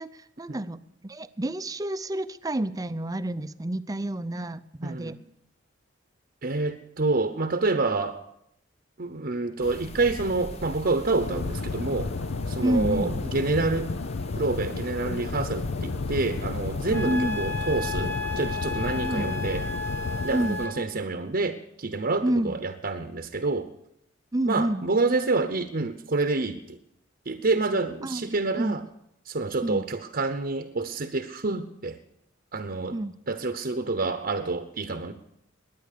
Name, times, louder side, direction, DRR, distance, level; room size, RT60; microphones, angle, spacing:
voice 1, 0.0-5.2 12.6-13.1 17.1-17.4 19.0-19.3 20.3-20.6 22.2-22.6 24.3-24.8 28.0-28.8 29.6-29.9 32.9-33.1, right 1 dB, 20° right, 13 dB, 0.5 m, -29 dB
voice 2, 4.8-5.2 6.4-8.2 9.0-12.1 12.5-13.9 14.4-19.6 20.2-23.7 24.5-26.8 27.3-28.8 29.3-32.0 32.5-33.0 33.3-35.1, right 3 dB, 50° right, 7 dB, 0.9 m, -28 dB
sound 1, 9.6-20.7, left 1 dB, 35° left, 0.9 m, -41 dB
sound 2, 11.2-20.3, left 3 dB, 85° left, 0.7 m, -32 dB
Wind instrument woodwind instrument, 16.9-20.8, left 3 dB, 10° left, 1.0 m, -33 dB
21.0 x 9.4 x 6.7 m, 0.77 s
head